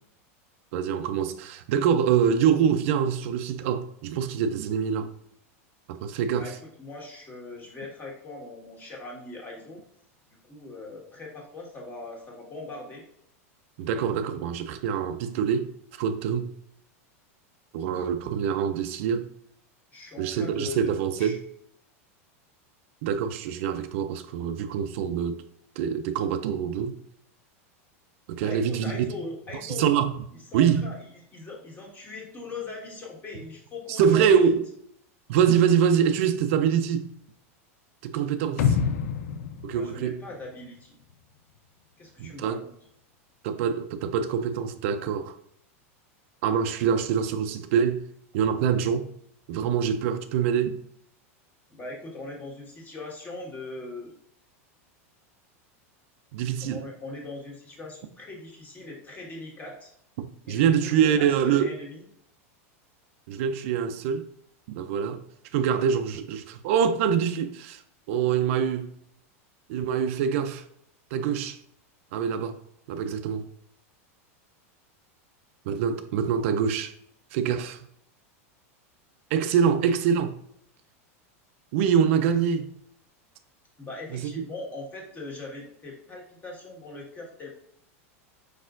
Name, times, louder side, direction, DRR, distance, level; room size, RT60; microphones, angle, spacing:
voice 1, 0.7-5.1 5.9-6.5 13.8-15.7 16.0-16.5 17.7-19.3 20.2-21.4 23.0-25.4 25.8-27.0 28.3-29.1 29.6-30.1 30.5-30.9 33.9-34.6 35.3-37.1 38.0-38.8 39.6-40.2 42.2-42.6 43.4-45.4 46.4-48.0 48.3-49.1 49.5-50.8 56.3-56.8 60.2-61.7 63.3-64.3 64.7-65.2 65.5-67.8 68.1-68.9 69.7-70.6 71.1-71.6 72.1-72.6 72.9-73.5 75.7-76.9 77.3-77.8 79.3-80.4 81.7-82.7 84.1-84.4, right 8 dB, 65° right, 0.4 m, -25 dB
voice 2, 6.8-9.8 10.3-13.0 19.9-21.4 28.4-29.8 30.5-34.3 39.7-41.0 42.0-42.7 51.7-54.1 56.6-59.9 60.4-62.1 83.8-87.5, left 2 dB, 25° left, 1.6 m, -40 dB
sound 1, 38.6-40.7 41.1-41.2, left 7 dB, 75° left, 0.4 m, -27 dB
4.9 x 4.2 x 2.5 m
hypercardioid pair, 115°, 8 cm